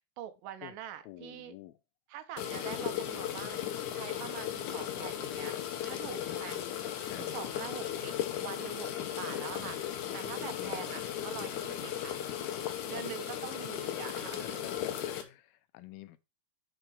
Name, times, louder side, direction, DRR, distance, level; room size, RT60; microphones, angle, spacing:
voice 1, 0.0-1.6 2.1-5.6 5.8-6.6 7.2-9.8 10.1-12.1 12.9-14.7, right 11 dB, 80° right, 2.2 m, -44 dB
voice 2, 1.0-1.8 5.9-6.4 7.0-7.4 10.4-10.8 12.9-13.1 14.6-16.2, left 14 dB, 85° left, 2.5 m, -48 dB
sound 1, 2.4-15.2, left 10 dB, 70° left, 2.0 m, -36 dB
5.6 x 4.4 x 5.3 m
omnidirectional pair, 4.2 m